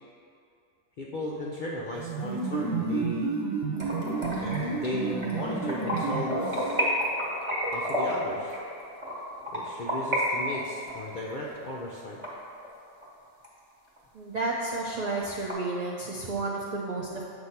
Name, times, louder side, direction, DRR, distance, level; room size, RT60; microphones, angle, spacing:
voice 1, 1.0-3.3 4.4-6.8 7.7-8.5 9.5-12.2, left 1 dB, 60° left, -4 dB, 0.5 m, -36 dB
sound 1, 1.9-6.9, right 4 dB, 85° right, 1.1 m, -31 dB
sound 2, 3.8-10.2 10.5-13.1 13.4-13.5 14.0-14.1 14.4-14.5 14.8-15.5, equal, 20° right, 1.2 m, -31 dB
voice 2, 14.1-17.3, right 2 dB, 65° right, -3 dB, 0.4 m, -31 dB
7.8 x 2.6 x 5.6 m, 2.4 s
omnidirectional pair, 1.4 m